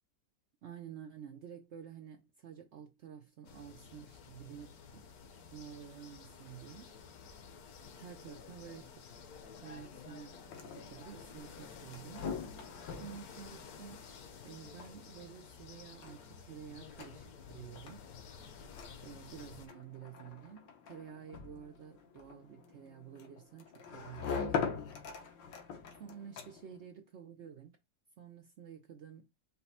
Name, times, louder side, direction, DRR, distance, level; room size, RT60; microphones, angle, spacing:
voice 1, 0.6-5.1 5.3-7.0 7.9-9.0 9.6-12.3 12.9-14.1 14.4-18.1 19.0-24.6 26.0-27.8 28.2-29.3, right 8 dB, 85° right, 0.6 m, -50 dB
sound 1, 3.5-19.7, left 6 dB, 60° left, 1.2 m, -52 dB
sound 2, 10.3-26.8, left 6 dB, 80° left, 1.5 m, -44 dB
5.6 x 2.1 x 4.1 m
omnidirectional pair, 1.9 m